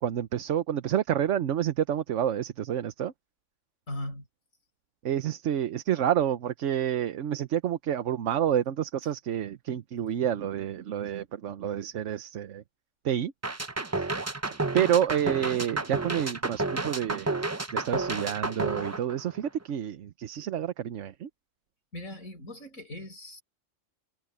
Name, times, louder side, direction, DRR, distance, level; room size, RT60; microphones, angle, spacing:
voice 1, 0.0-3.1 5.0-12.6 13.0-13.3 13.9-14.1 14.7-21.3, right 10 dB, 65° right, 1.1 m, -29 dB
voice 2, 3.9-4.3 21.9-23.4, left 1 dB, 85° left, 6.4 m, -39 dB
sound 1, 13.4-19.6, right 2 dB, 20° right, 0.5 m, -31 dB
omnidirectional pair, 1.4 m